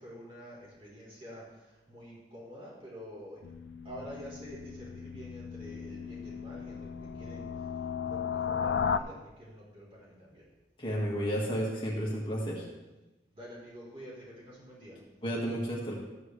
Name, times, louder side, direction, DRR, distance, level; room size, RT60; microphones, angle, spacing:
voice 1, 0.0-3.4 3.8-7.7 8.0-10.5 13.3-15.0, equal, 30° right, -6 dB, 4.1 m, -48 dB
sound 1, 3.4-9.0, left 6 dB, 80° left, 0.4 m, -35 dB
voice 2, 10.8-12.7 15.2-15.9, equal, 30° left, -4 dB, 1.9 m, -32 dB
14.5 x 9.2 x 3.3 m, 1.1 s
head